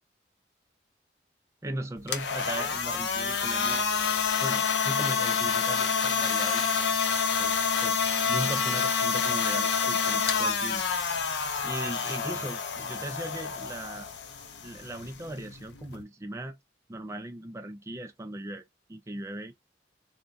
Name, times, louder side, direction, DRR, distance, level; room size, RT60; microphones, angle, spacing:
voice 1, 1.6-4.1 4.4-6.6 7.4-10.8 11.6-14.1 14.6-16.6 16.9-19.5, right 1 dB, 15° right, 0.4 m, -38 dB
sound 1, 2.0-16.0, left 6 dB, 70° left, 0.5 m, -28 dB
3.5 x 2.1 x 2.5 m
head